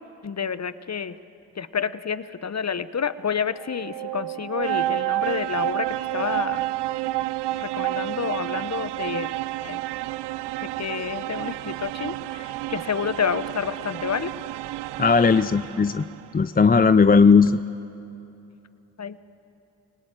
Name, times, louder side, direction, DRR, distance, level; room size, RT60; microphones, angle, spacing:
voice 1, 0.2-1.1 1.6-6.6 7.5-9.3 9.6-9.8 10.6-14.3 19.0-19.2, left 6 dB, 40° left, 14 dB, 1.1 m, -29 dB
sound 1, 3.5-16.3, right 16 dB, 85° right, 0.5 m, -30 dB
voice 2, 15.0-16.1 16.3-17.6, left 5 dB, 20° left, 13 dB, 0.6 m, -17 dB
24.5 x 20.0 x 9.1 m, 2.9 s
supercardioid pair, 40°, 40 cm